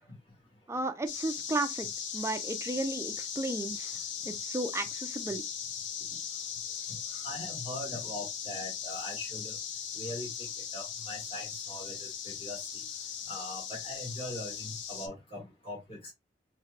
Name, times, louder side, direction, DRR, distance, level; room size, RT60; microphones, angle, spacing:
voice 1, 0.7-4.0 4.2-5.4, right 2 dB, 15° right, 0.4 m, -34 dB
sound 1, 1.1-15.1, left 8 dB, 80° left, 0.6 m, -38 dB
voice 2, 7.1-9.5 9.9-10.3 10.7-12.6 13.3-16.1, left 1 dB, 30° left, 1.5 m, -41 dB
3.3 x 3.0 x 2.4 m
head